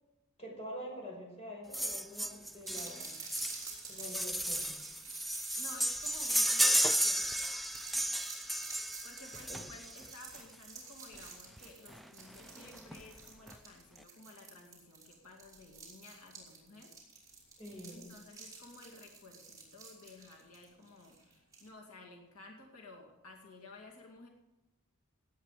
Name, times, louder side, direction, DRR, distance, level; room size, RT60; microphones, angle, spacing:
voice 1, 0.4-3.2 3.8-4.8 9.5-9.6 17.6-18.1, equal, 30° left, -1 dB, 5.5 m, -46 dB
sound 1, 1.7-10.1 11.1-11.2 11.6-11.7 11.9-12.0 12.4-13.0 13.5-13.6, right 1 dB, ahead, 0.4 m, -33 dB
sound 2, 2.7-21.7, right 4 dB, 15° right, 4.6 m, -50 dB
voice 2, 5.6-7.5 8.8-17.0 17.5-17.6 17.9-24.3, left 2 dB, 85° left, 0 dB, 2.3 m, -54 dB
17.5 x 9.3 x 4.9 m, 1.0 s
head